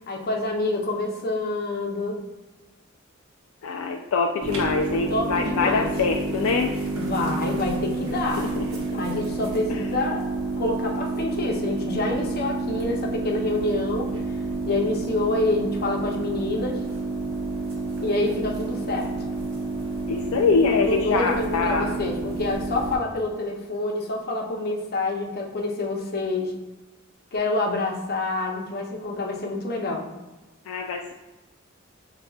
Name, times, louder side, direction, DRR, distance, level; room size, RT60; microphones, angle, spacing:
voice 1, 0.1-2.2 5.1-5.9 7.0-8.5 8.9-10.2 10.6-14.1 14.6-16.8 18.0-19.1 20.9-26.5 27.3-30.0, left 2 dB, 45° left, 0 dB, 0.7 m, -27 dB
voice 2, 3.6-6.7 8.4-9.2 9.7-9.8 20.1-22.0 30.7-31.1, left 4 dB, 70° left, 2 dB, 0.3 m, -24 dB
sound 1, 4.4-23.0, right 3 dB, 65° right, 0.9 m, -29 dB
6.6 x 2.3 x 2.3 m, 1.1 s
head